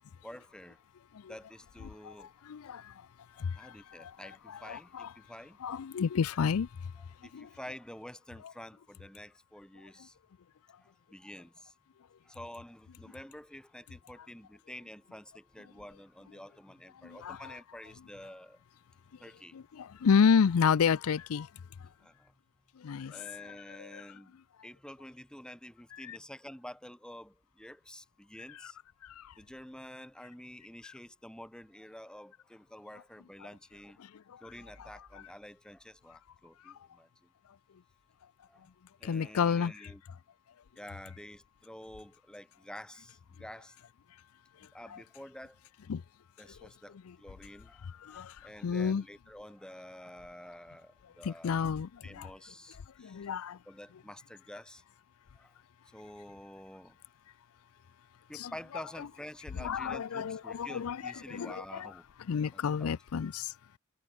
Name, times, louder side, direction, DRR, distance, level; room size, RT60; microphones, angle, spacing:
voice 1, 0.2-0.8 1.3-2.3 3.5-5.6 7.0-10.2 10.8-11.7 12.2-18.6 19.2-19.5 22.0-22.3 23.1-24.3 24.6-28.8 29.4-34.0 34.4-37.3 38.5-38.7 39.0-40.0 40.7-43.8 44.7-45.6 46.4-51.7 52.0-53.2 53.7-54.8 55.3-55.5 55.9-57.0 58.3-62.0 62.5-63.0, left 1 dB, 5° left, 1.4 m, -49 dB
voice 2, 2.0-2.9 3.4-4.1 4.5-5.1 5.6-6.7 7.3-7.5 17.0-17.6 19.5-21.5 22.8-24.0 25.9-26.2 28.6-28.7 29.0-29.3 34.0-34.4 34.8-34.9 39.0-39.7 44.9-45.0 45.9-46.0 47.1-47.2 47.8-49.0 51.2-52.3 53.0-53.6 58.3-58.5 59.6-61.9 62.3-63.5, left 6 dB, 80° left, 0.4 m, -31 dB
head